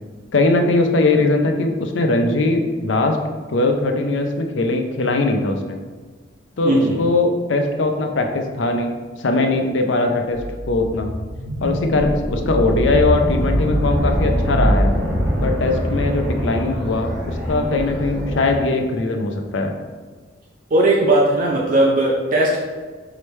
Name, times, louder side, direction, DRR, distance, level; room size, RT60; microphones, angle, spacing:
voice 1, 0.3-3.2 3.5-5.8 6.6-11.1 11.6-14.9 15.4-19.8, left 2 dB, 75° left, 4 dB, 0.5 m, -20 dB
voice 2, 6.6-7.0 20.7-22.6, right 1 dB, 45° right, -2 dB, 0.5 m, -17 dB
sound 1, 10.3-18.6, equal, ahead, 1.2 m, -23 dB
4.8 x 3.1 x 3.1 m, 1.4 s
head